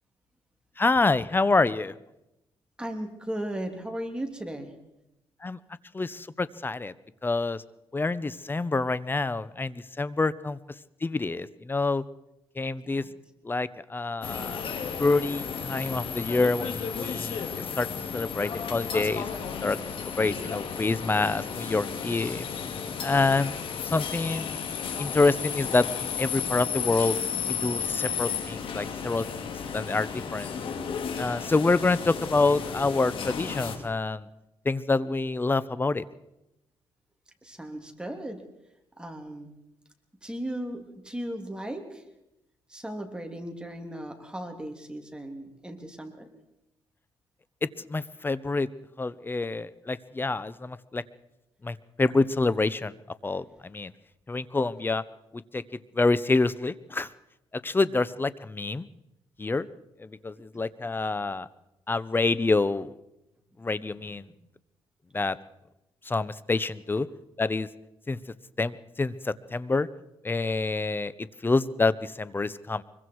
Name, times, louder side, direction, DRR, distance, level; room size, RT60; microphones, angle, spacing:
voice 1, 0.8-1.9 5.4-5.6 5.9-6.9 7.2-7.6 7.9-10.6 11.0-12.0 12.6-13.0 13.4-14.6 15.0-17.9 18.1-22.5 23.0-23.5 23.8-24.6 25.0-27.2 27.5-30.5 31.2-34.3 34.6-36.0 47.6-48.7 49.0-51.0 51.6-52.9 53.2-53.9 54.3-55.0 55.3-55.6 55.9-57.1 57.6-58.9 59.4-59.7 60.0-61.5 61.9-62.9 63.6-64.3 65.1-65.4 66.0-67.1 67.4-67.7 68.1-68.2 68.6-69.9 70.2-72.8, left 3 dB, 20° left, 17 dB, 0.9 m, -27 dB
voice 2, 2.8-4.7 12.8-13.0 37.4-38.4 39.0-39.5 40.2-42.0 42.7-46.3 64.3-64.4, right 1 dB, 10° right, 4 dB, 3.3 m, -36 dB
sound 1, 14.2-33.8, left 6 dB, 65° left, 3.0 m, -33 dB
Drill, 18.9-28.2, left 7 dB, 85° left, 4.9 m, -48 dB
24.5 x 22.5 x 4.8 m, 0.88 s
cardioid pair, 85°, 10 cm